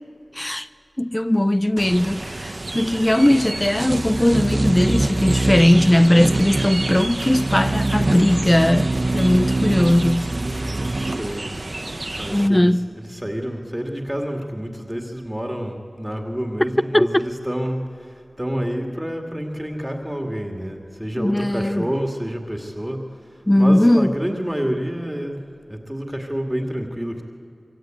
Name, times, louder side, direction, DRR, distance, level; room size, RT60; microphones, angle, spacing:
voice 1, 0.3-0.7 1.0-10.3 12.3-12.9 16.9-17.1 21.2-21.9 23.5-24.1, left 1 dB, 20° left, 0.6 m, -18 dB
sound 1, 1.8-12.5, right 2 dB, 45° right, 1.0 m, -25 dB
voice 2, 10.1-11.6 12.2-25.4 25.7-27.3, equal, 10° right, 2.3 m, -29 dB
25.0 x 23.5 x 9.1 m
wide cardioid pair, 50°, 0 cm